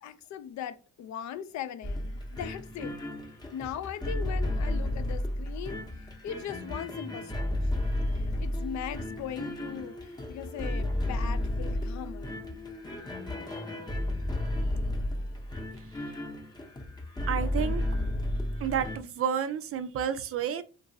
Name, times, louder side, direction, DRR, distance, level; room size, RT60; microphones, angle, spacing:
voice 1, 0.0-3.0 3.5-5.8 6.2-7.5 8.1-12.4, left 9 dB, 65° left, 0.5 m, -39 dB
sound 1, 1.8-19.0, left 1 dB, 15° left, 0.7 m, -32 dB
voice 2, 17.3-17.9 18.6-20.6, right 8 dB, 50° right, 0.5 m, -30 dB
2.9 x 2.6 x 2.7 m
cardioid pair, 90°, 30 cm